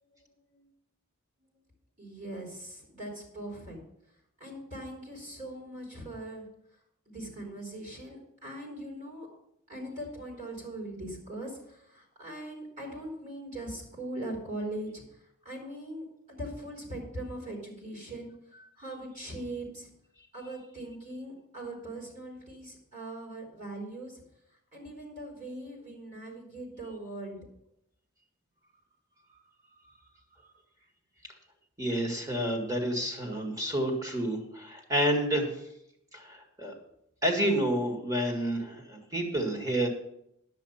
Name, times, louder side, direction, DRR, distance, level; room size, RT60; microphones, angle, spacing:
voice 1, 2.0-3.8 4.4-6.5 7.0-9.3 9.7-15.0 15.4-18.3 18.8-19.9 20.3-24.2 24.7-27.4, right 1 dB, 35° right, -2 dB, 3.5 m, -40 dB
voice 2, 31.8-35.6 36.1-36.7 37.2-39.9, right 1 dB, 15° right, 2 dB, 1.9 m, -29 dB
10.5 x 7.6 x 5.7 m, 0.76 s
head